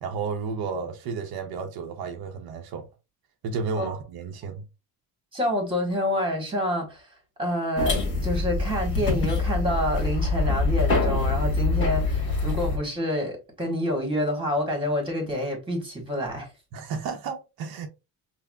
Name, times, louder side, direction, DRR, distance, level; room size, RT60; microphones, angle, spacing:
voice 1, 0.0-2.9 3.4-4.6 16.7-17.9, right 5 dB, 75° right, 0.7 m, -32 dB
voice 2, 5.3-7.1 7.4-16.5, equal, 15° right, 1.4 m, -27 dB
sound 1, 7.8-12.8, left 3 dB, 30° left, 1.5 m, -25 dB
5.7 x 2.0 x 2.3 m
cardioid pair, 140°, 38 cm